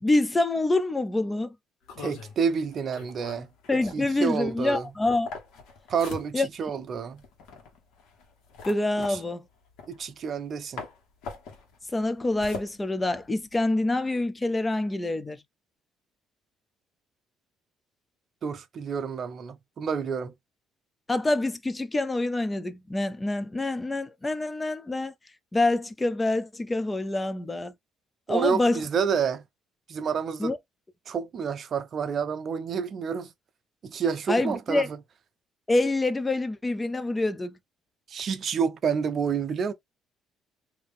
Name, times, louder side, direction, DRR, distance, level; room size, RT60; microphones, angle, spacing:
voice 1, 0.0-1.5 3.7-5.3 6.3-6.5 8.7-9.4 11.9-15.4 21.1-25.1 25.5-27.7 28.3-28.8 30.4-30.6 34.3-34.9 35.7-37.6, left 2 dB, 15° left, 0.4 m, -26 dB
sound 1, 1.8-10.5 10.8-13.7, left 4 dB, 80° left, 1.4 m, -43 dB
voice 2, 2.0-3.5 3.9-4.9 5.9-7.2 9.1-9.2 9.9-10.8 18.4-20.3 28.3-29.4 29.9-30.5 31.1-33.3 33.8-35.0 38.1-39.7, right 6 dB, 40° right, 0.6 m, -29 dB
3.4 x 2.8 x 3.6 m
cardioid pair, 155°, 0 cm